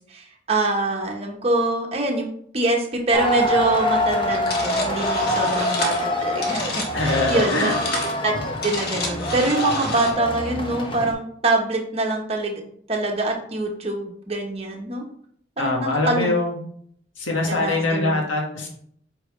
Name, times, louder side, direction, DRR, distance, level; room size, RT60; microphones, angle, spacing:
voice 1, 0.1-2.3 2.5-7.8 8.2-8.3 8.6-12.6 12.9-15.0 15.6-16.3 17.5-18.1, right 2 dB, 30° right, 1 dB, 1.1 m, -24 dB
sound 1, 3.1-11.1, equal, 25° left, 0.8 m, -25 dB
sound 2, 4.3-10.1, left 3 dB, 55° left, 1.4 m, -30 dB
voice 2, 6.9-7.7 15.6-16.5 17.2-18.7, left 2 dB, 85° left, 0 dB, 1.8 m, -23 dB
8.3 x 4.6 x 3.3 m, 0.64 s
head